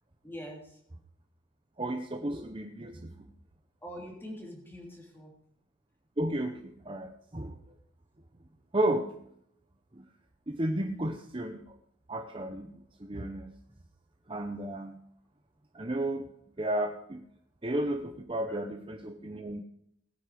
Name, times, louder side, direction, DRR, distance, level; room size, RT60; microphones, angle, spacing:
voice 1, 0.2-0.8 3.8-5.3 18.5-18.6, equal, 10° left, 0 dB, 3.5 m, -44 dB
voice 2, 1.8-3.3 6.2-7.6 8.7-9.1 9.9-10.0 10.5-11.6 12.1-12.7 13.0-13.5 14.3-15.0 15.7-16.3 16.6-17.2 17.6-19.6, right 1 dB, 25° right, 6 dB, 0.8 m, -33 dB
18.0 x 9.6 x 5.1 m, 0.71 s
head